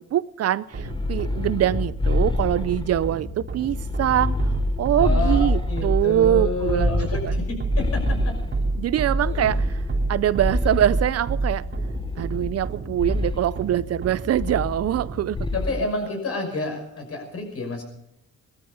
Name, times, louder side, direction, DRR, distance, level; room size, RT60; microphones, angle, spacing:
voice 1, 0.0-4.3 4.8-7.4 8.8-9.8 10.1-11.6 12.2-15.4, right 11 dB, 55° right, 18 dB, 0.5 m, -23 dB
sound 1, 0.7-3.2 3.6-6.1 6.6-8.7 9.2-11.1 11.7-12.7 13.0-13.5 14.3-15.1 15.4-15.8, left 2 dB, 15° left, 1.1 m, -27 dB
sound 2, 0.7-15.4, right 2 dB, 40° right, 2.6 m, -29 dB
voice 2, 5.0-7.4 7.8-8.2 9.2-9.5 15.5-17.8, left 2 dB, 50° left, 3 dB, 5.9 m, -29 dB
19.0 x 13.5 x 5.5 m, 0.79 s
cardioid pair, 90°, 30 cm